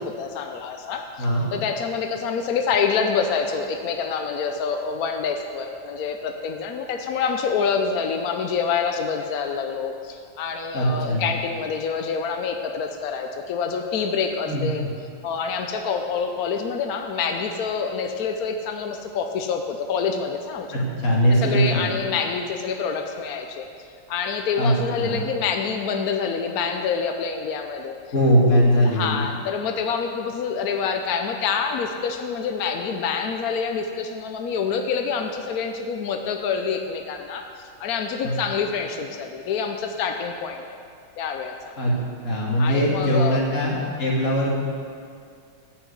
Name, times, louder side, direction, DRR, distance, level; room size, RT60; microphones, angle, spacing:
voice 1, 0.0-1.3 1.5-14.9 15.2-20.7 21.4-23.7 24.1-28.0 28.8-40.6 41.2-41.7 42.6-43.4, left 6 dB, 80° left, 5 dB, 0.8 m, -27 dB
voice 2, 10.7-11.2 14.5-14.6 20.7-21.9 24.6-25.2 28.1-29.1 38.2-38.3 41.8-41.9 42.2-44.5, equal, 35° left, -4 dB, 2.2 m, -20 dB
9.9 x 5.8 x 7.9 m, 2.3 s
omnidirectional pair, 2.3 m